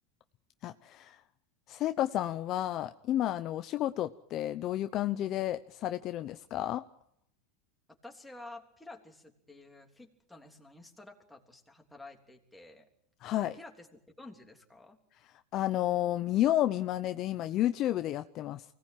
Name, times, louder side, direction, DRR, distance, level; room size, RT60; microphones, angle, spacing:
voice 1, 0.6-1.2 1.7-6.8 13.2-13.6 15.5-18.6, left 13 dB, 40° left, 10 dB, 0.8 m, -31 dB
voice 2, 7.9-12.9 13.5-15.0, left 2 dB, 5° left, 1 dB, 3.3 m, -51 dB
24.0 x 18.0 x 9.1 m, 0.73 s
supercardioid pair, 135°, 0 cm